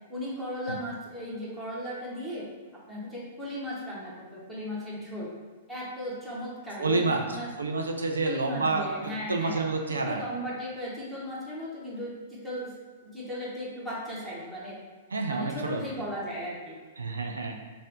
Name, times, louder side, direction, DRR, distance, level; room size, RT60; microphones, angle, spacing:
voice 1, 0.1-2.5 2.9-5.3 5.7-7.5 8.2-12.7 13.0-14.8 15.2-16.8, equal, 5° right, -7 dB, 1.5 m, -36 dB
voice 2, 6.8-8.9 9.3-10.2 15.1-15.8 17.0-17.5, right 3 dB, 75° right, 3 dB, 0.4 m, -28 dB
5.4 x 2.5 x 3.6 m, 1.5 s
figure-of-eight pair, 105°, 0 cm